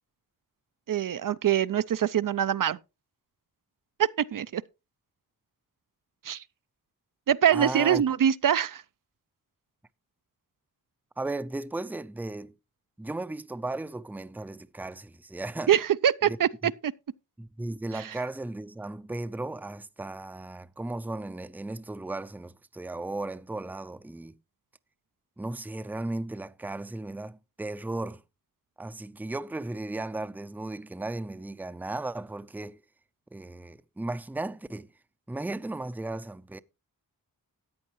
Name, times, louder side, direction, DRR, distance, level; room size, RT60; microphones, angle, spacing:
voice 1, 0.9-2.8 4.0-4.6 6.2-6.4 7.3-8.8 15.7-16.5 16.8-16.9 17.9-18.0, right 9 dB, 65° right, 0.5 m, -24 dB
voice 2, 7.5-8.0 11.2-12.5 13.0-15.7 16.2-16.4 16.6-16.7 17.4-24.3 25.4-28.2 28.8-32.8 33.3-34.9 35.3-36.6, right 2 dB, 5° right, 0.5 m, -35 dB
14.0 x 9.1 x 3.0 m
wide cardioid pair, 95°, 36 cm